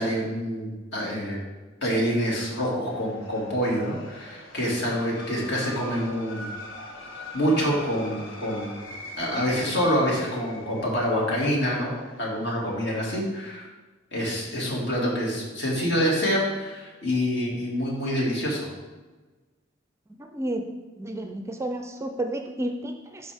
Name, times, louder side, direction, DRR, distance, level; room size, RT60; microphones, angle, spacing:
voice 1, 0.0-1.4 1.8-6.5 7.3-8.8 9.2-11.9 12.2-13.6 14.1-18.6, equal, 60° left, -3 dB, 2.1 m, -26 dB
sound 1, 2.8-12.8, left 1 dB, 85° left, 1.3 m, -42 dB
voice 2, 20.2-20.6 21.0-23.3, right 1 dB, 15° right, 5 dB, 0.4 m, -31 dB
11.5 x 4.2 x 3.5 m, 1.3 s
head